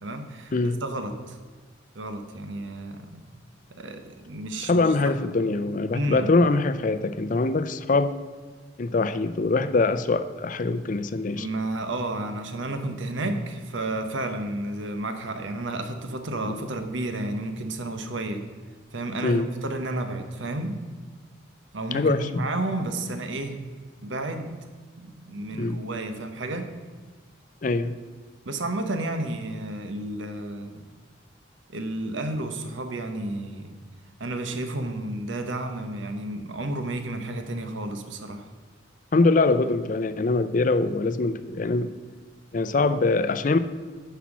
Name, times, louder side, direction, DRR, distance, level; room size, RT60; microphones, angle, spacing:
voice 1, 0.0-1.4 1.9-3.2 3.8-5.2 5.9-6.3 11.4-18.4 18.9-20.8 21.7-23.6 24.0-24.5 25.0-26.7 28.4-30.8 31.7-33.7 34.2-38.5, right 2 dB, 85° right, 7 dB, 1.1 m, -31 dB
voice 2, 0.5-0.8 4.6-8.1 8.8-11.5 19.2-19.5 21.9-22.4 25.5-25.8 27.6-27.9 39.1-41.9 42.5-43.6, left 3 dB, 45° left, 12 dB, 0.5 m, -23 dB
10.0 x 5.8 x 6.0 m, 1.5 s
head